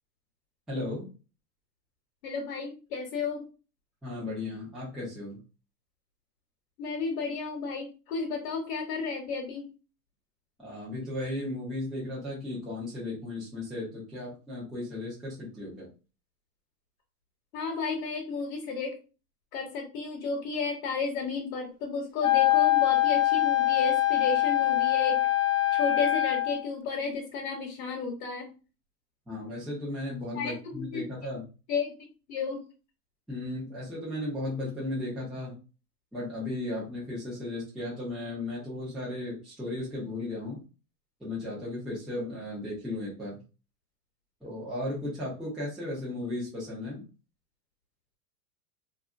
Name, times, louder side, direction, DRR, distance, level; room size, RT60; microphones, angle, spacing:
voice 1, 0.7-1.1 4.0-5.4 10.6-15.9 29.3-31.4 33.3-35.6 36.1-40.6 41.2-43.4 44.4-47.0, left 1 dB, ahead, -7 dB, 0.4 m, -35 dB
voice 2, 2.2-3.5 6.8-9.7 17.5-19.0 19.5-25.3 25.7-28.5 30.3-31.0 31.7-31.9 32.3-32.6, left 4 dB, 60° left, 0 dB, 0.9 m, -32 dB
Wind instrument woodwind instrument, 22.2-26.6, left 14 dB, 75° left, 0.5 m, -24 dB
2.7 x 2.5 x 2.3 m, 0.34 s
supercardioid pair, 140°, 46 cm